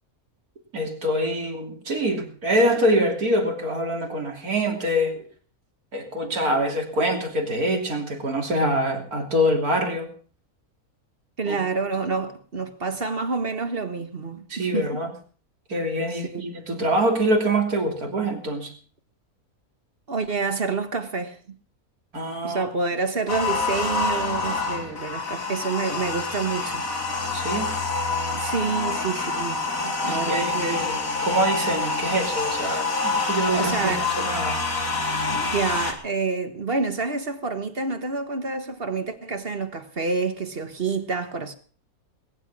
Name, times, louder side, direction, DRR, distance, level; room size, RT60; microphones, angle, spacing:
voice 1, 0.7-5.3 5.9-10.1 11.5-11.6 14.5-15.1 15.7-18.7 22.1-22.7 27.3-27.7 30.0-34.6, equal, 85° right, 3.6 m, -25 dB
voice 2, 11.4-15.0 16.3-16.4 20.1-21.6 22.4-27.2 28.3-30.8 33.5-34.1 35.2-41.6, right 4 dB, 40° right, 1.6 m, -28 dB
sound 1, 23.3-35.9, left 3 dB, 65° left, 3.0 m, -27 dB
20.0 x 10.5 x 6.1 m
omnidirectional pair, 1.5 m